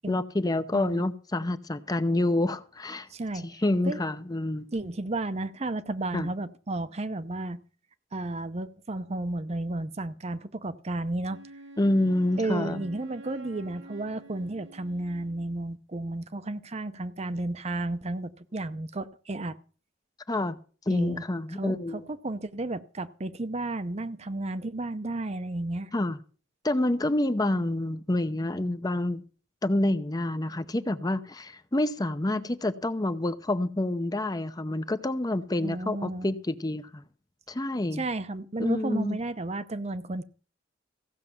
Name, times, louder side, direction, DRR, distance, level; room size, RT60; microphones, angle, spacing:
voice 1, 0.1-3.1 3.4-4.7 6.1-6.3 11.8-12.8 20.3-20.6 20.9-22.0 25.9-26.2 26.6-29.2 29.6-37.0 37.5-38.0 38.6-39.2, left 1 dB, 20° left, 0.7 m, -28 dB
voice 2, 0.7-1.1 3.1-4.0 4.7-7.6 8.1-11.4 12.4-19.6 20.9-21.2 21.5-25.9 35.6-36.3 37.9-40.2, right 2 dB, 35° right, 0.7 m, -33 dB
Wind instrument woodwind instrument, 11.3-15.6, right 2 dB, 85° right, 2.3 m, -48 dB
15.5 x 6.5 x 7.1 m
head